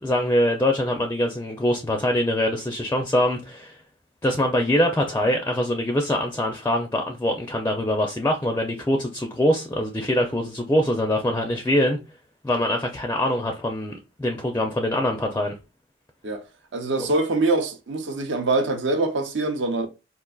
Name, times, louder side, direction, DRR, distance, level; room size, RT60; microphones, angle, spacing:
voice 1, 0.0-3.8 4.2-12.0 12.4-15.5, left 1 dB, 10° left, 0.4 m, -23 dB
voice 2, 16.7-19.9, right 2 dB, 70° right, 0.7 m, -24 dB
3.8 x 2.4 x 2.2 m
head